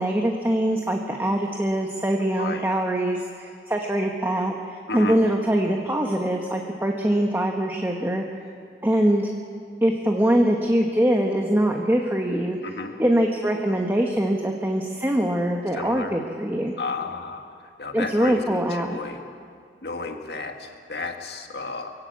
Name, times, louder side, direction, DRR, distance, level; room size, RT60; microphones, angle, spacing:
voice 1, 0.0-8.2 8.8-9.3 9.8-16.8 17.9-19.0, right 1 dB, 15° right, 2 dB, 1.2 m, -23 dB
voice 2, 2.4-2.7 4.9-5.2 12.6-12.9 15.8-16.1 16.8-17.4 17.8-19.2 19.8-21.9, left 3 dB, 70° left, 4 dB, 1.9 m, -32 dB
23.5 x 16.5 x 8.4 m, 2.2 s
head